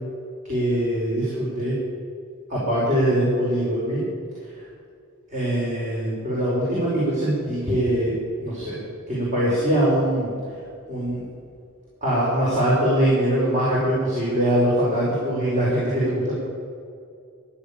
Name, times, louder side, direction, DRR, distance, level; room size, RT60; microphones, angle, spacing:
voice 1, 0.4-1.7 2.5-4.0 5.3-8.1 8.4-8.8 9.1-10.3 10.9-11.2 12.0-16.3, right 1 dB, 35° right, -7 dB, 4.9 m, -22 dB
15.0 x 11.0 x 8.7 m, 2.4 s
head